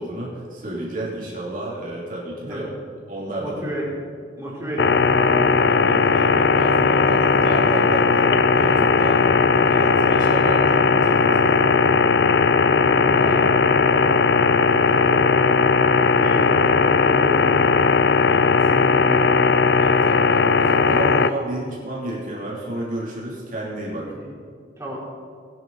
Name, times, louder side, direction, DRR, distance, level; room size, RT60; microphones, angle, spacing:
voice 1, 0.0-2.7 3.1-3.6 5.7-11.7 18.3-18.5 19.8-24.1, right 1 dB, 45° right, -5 dB, 3.0 m, -31 dB
voice 2, 3.4-3.9 4.3-6.1 12.6-13.5 13.8-14.3 14.7-15.7 16.2-17.7 18.6-19.4 24.0-24.4 24.8-25.0, equal, 15° right, -6 dB, 4.0 m, -32 dB
sound 1, 4.8-21.3, left 4 dB, 65° left, 0.5 m, -17 dB
19.5 x 10.5 x 4.1 m, 2.1 s
head